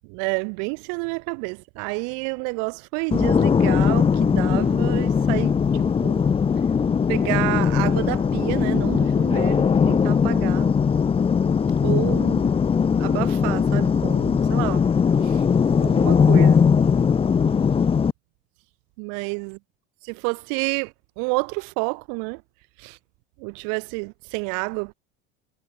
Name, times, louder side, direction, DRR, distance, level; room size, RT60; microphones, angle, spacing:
voice 1, 0.1-6.2 7.1-10.7 11.8-12.5 13.0-14.8 15.2-15.4 15.8-16.6 19.0-19.6 20.0-20.9 21.2-22.4 22.8-23.0 23.4-24.9, right 40 dB or more, 70° right, 0.7 m, -29 dB
sound 1, 3.1-18.1, left 6 dB, 15° left, 0.6 m, -20 dB
supercardioid pair, 100°, 34 cm